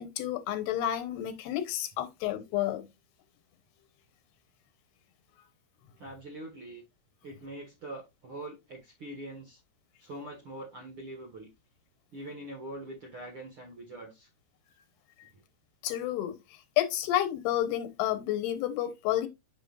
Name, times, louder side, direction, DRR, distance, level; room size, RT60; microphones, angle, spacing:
voice 1, 0.0-2.9 15.8-16.4 16.8-19.3, left 13 dB, 80° left, 2.8 m, -30 dB
voice 2, 6.0-6.8 7.2-9.6 10.0-11.5 12.1-14.3 15.3-15.4, right 1 dB, 55° right, 1.6 m, -43 dB
7.8 x 6.5 x 2.4 m
omnidirectional pair, 4.8 m